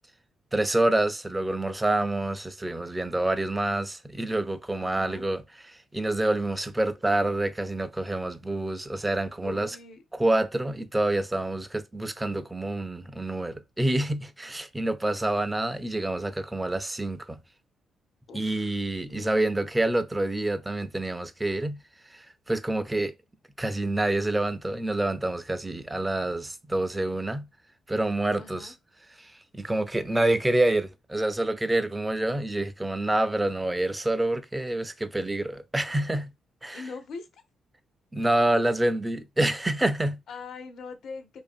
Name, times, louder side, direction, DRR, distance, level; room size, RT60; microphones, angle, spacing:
voice 1, 0.5-5.4 5.9-9.8 10.1-17.4 18.3-21.8 22.1-23.1 23.6-27.5 27.9-28.7 29.2-36.3 36.6-36.8 38.1-40.2, right 1 dB, 15° right, 0.4 m, -27 dB
voice 2, 4.8-5.3 9.4-10.0 18.3-18.8 19.1-19.4 28.4-28.7 36.7-37.4 40.3-41.4, left 4 dB, 70° left, 0.5 m, -42 dB
2.5 x 2.4 x 2.4 m
supercardioid pair, 60°, 0 cm